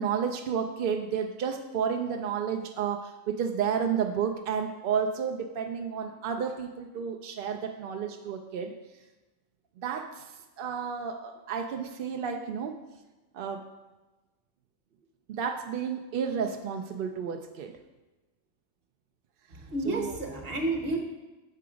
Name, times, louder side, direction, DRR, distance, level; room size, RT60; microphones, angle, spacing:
voice 1, 0.0-8.7 9.8-10.3 10.6-12.8 13.3-13.7 15.3-17.8 19.9-20.1, right 7 dB, 65° right, 4 dB, 0.5 m, -31 dB
voice 2, 19.5-21.0, right 2 dB, 50° right, 2 dB, 1.2 m, -31 dB
7.7 x 4.7 x 5.0 m, 1.1 s
omnidirectional pair, 1.4 m